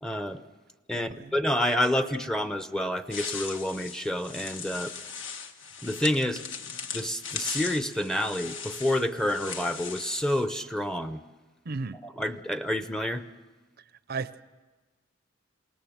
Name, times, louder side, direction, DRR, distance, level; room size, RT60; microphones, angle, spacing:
voice 1, 0.0-0.4 0.9-4.9 5.8-6.4 6.9-11.2 12.2-13.2, left 1 dB, 5° left, 0.7 m, -28 dB
voice 2, 0.9-1.3 11.7-12.0 14.1-14.4, right 4 dB, 50° right, 0.6 m, -35 dB
sound 1, 3.1-10.4, left 6 dB, 75° left, 1.5 m, -38 dB
27.5 x 19.0 x 7.3 m
head